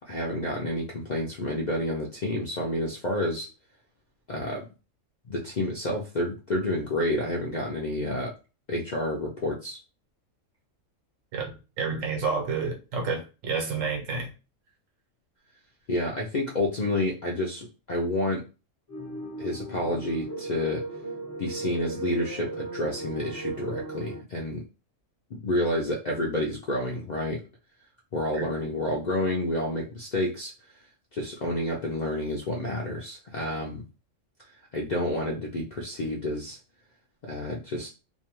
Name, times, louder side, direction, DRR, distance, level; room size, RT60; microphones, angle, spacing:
voice 1, 0.1-3.5 4.3-4.6 5.3-8.3 8.7-9.8 15.9-18.4 19.4-20.8 21.4-24.6 25.3-27.4 28.1-30.5 31.1-33.8 34.7-36.6 37.2-37.9, left 1 dB, 60° left, 0.4 m, -29 dB
voice 2, 11.3-14.3 28.3-28.5, right 5 dB, 80° right, 1.2 m, -30 dB
sound 1, 18.9-24.2, right 2 dB, 15° left, 0.7 m, -36 dB
2.6 x 2.2 x 2.9 m
omnidirectional pair, 1.3 m